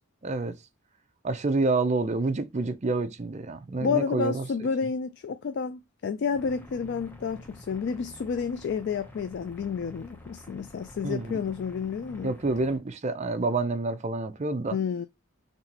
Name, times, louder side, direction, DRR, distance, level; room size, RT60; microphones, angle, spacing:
voice 1, 0.2-0.5 1.2-4.4 11.0-11.4 12.2-14.8, right 3 dB, 35° right, 0.5 m, -28 dB
voice 2, 3.8-12.3 14.7-15.1, left 6 dB, 55° left, 0.3 m, -30 dB
sound 1, 6.3-12.8, equal, 10° left, 0.6 m, -48 dB
4.1 x 2.9 x 2.8 m
head